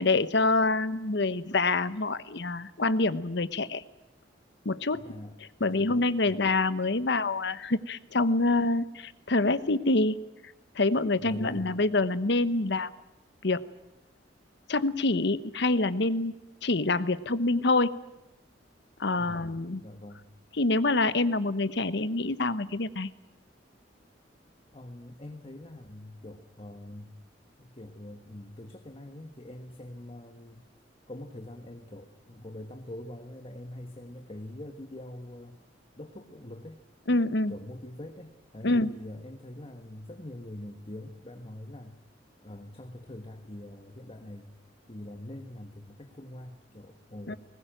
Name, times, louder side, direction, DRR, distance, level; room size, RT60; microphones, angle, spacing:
voice 1, 0.0-3.8 4.6-5.0 5.6-10.2 10.7-12.9 13.4-13.6 14.7-16.3 16.6-17.9 19.0-19.8 20.6-23.1 37.1-37.5 38.6-38.9 47.3-47.4, left 2 dB, 65° left, 14 dB, 1.0 m, -26 dB
voice 2, 4.9-5.9 6.2-6.4 11.2-11.7 19.2-20.3 24.7-27.2 27.6-30.6 31.1-35.6 35.9-36.8 37.5-42.0 42.4-44.5 44.9-47.4, left 1 dB, 30° left, 6 dB, 1.5 m, -44 dB
21.0 x 19.5 x 9.0 m, 0.91 s
head